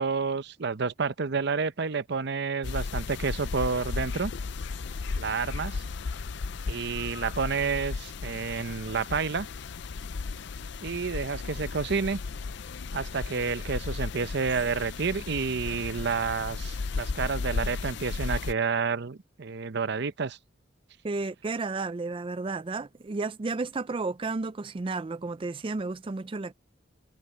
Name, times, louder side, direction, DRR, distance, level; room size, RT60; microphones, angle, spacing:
voice 1, 0.0-4.3 5.2-5.8 6.7-9.5 10.8-12.2 12.9-20.4, right 5 dB, 60° right, 0.7 m, -30 dB
sound 1, 2.6-18.5, left 4 dB, 65° left, 0.5 m, -35 dB
voice 2, 21.0-26.5, right 3 dB, 25° right, 0.4 m, -32 dB
head